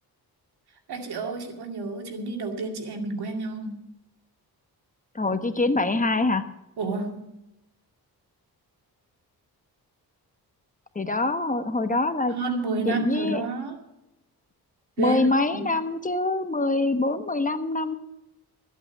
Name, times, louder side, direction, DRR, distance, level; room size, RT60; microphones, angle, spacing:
voice 1, 0.9-3.8 6.8-7.3 12.3-13.8 15.0-15.2 15.5-15.7, right 3 dB, 85° right, 4 dB, 2.4 m, -30 dB
voice 2, 5.1-6.4 10.9-12.4 12.9-13.4 15.0-18.0, left 2 dB, 20° left, 9 dB, 1.1 m, -24 dB
14.0 x 8.4 x 7.1 m, 0.91 s
cardioid pair, 95°, 38 cm